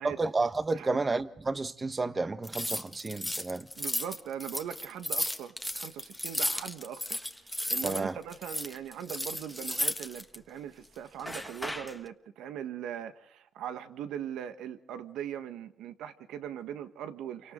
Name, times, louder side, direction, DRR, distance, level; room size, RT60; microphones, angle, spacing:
voice 1, 0.0-3.7 7.8-8.2, right 3 dB, 25° right, 1.4 m, -31 dB
sound 1, 2.4-8.0 8.3-10.4 11.2-12.0, left 1 dB, 5° left, 1.6 m, -34 dB
voice 2, 3.8-17.5, right 9 dB, 85° right, 1.6 m, -40 dB
28.5 x 25.0 x 3.9 m
cardioid pair, 80°, 0 cm